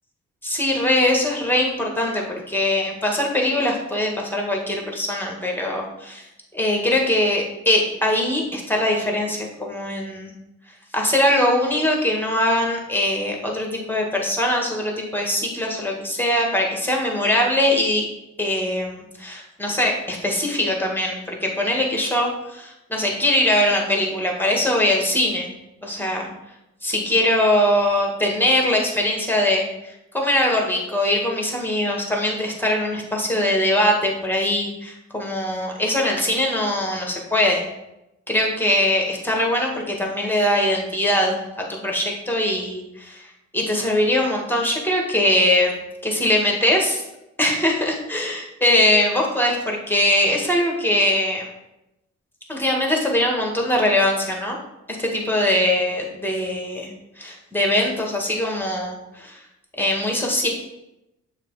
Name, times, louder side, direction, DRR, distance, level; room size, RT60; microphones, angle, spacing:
voice 1, 0.4-10.3 10.9-18.1 18.4-25.5 25.8-26.3 26.8-37.6 38.3-45.7 46.0-47.0 47.4-51.5 52.5-54.6 54.9-56.9 57.2-59.4 59.8-60.5, left 1 dB, 5° left, 0 dB, 1.8 m, -22 dB
6.6 x 3.2 x 4.9 m, 0.91 s
supercardioid pair, 45°, 32 cm